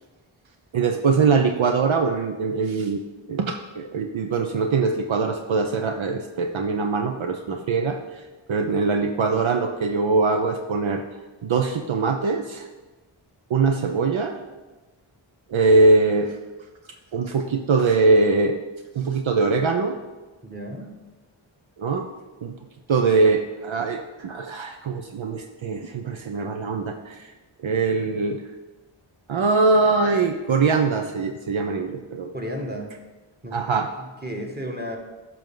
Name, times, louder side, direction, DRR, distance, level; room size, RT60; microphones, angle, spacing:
voice 1, 0.7-3.0 3.3-8.2 8.5-11.0 11.4-12.7 13.5-14.4 15.5-16.3 17.1-18.6 18.9-20.0 21.8-22.1 22.4-22.6 22.9-27.3 27.6-28.4 29.3-32.3 33.5-33.9, right 4 dB, 70° right, 5 dB, 0.7 m, -22 dB
voice 2, 20.4-20.9 32.3-32.9 33.4-33.6 34.0-35.0, equal, 20° right, 0 dB, 1.9 m, -33 dB
11.0 x 6.0 x 3.8 m, 1.2 s
cardioid pair, 45°, 49 cm